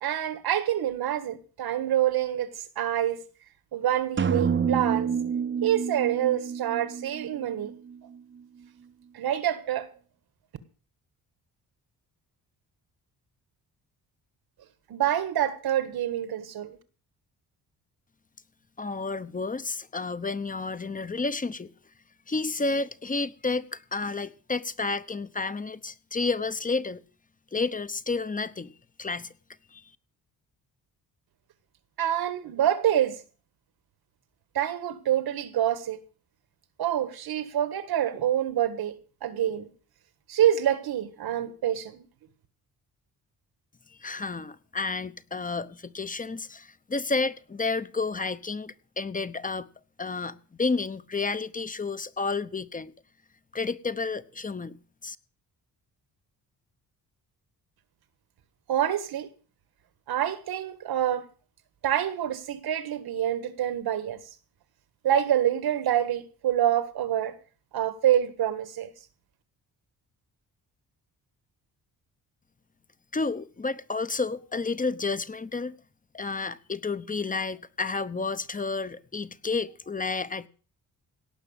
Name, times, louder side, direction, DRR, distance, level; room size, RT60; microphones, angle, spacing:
voice 1, 0.0-2.5 2.8-3.2 3.7-5.1 5.6-7.7 9.1-9.9 14.9-16.8 32.0-33.2 34.6-36.0 36.8-39.0 39.2-39.7 40.3-42.1 58.7-59.3 60.1-61.2 61.8-64.2 65.0-67.3 67.7-68.9, right 11 dB, 80° right, 1.8 m, -26 dB
sound 1, 4.2-8.0, right 7 dB, 30° right, 0.7 m, -28 dB
voice 2, 18.8-21.7 22.3-27.0 27.5-28.7 29.0-29.3 29.7-29.9 44.0-49.7 50.0-52.9 53.5-55.2 73.1-75.7 76.1-80.5, left 4 dB, 20° left, 0.9 m, -31 dB
17.5 x 6.0 x 8.9 m
cardioid pair, 95°, 37 cm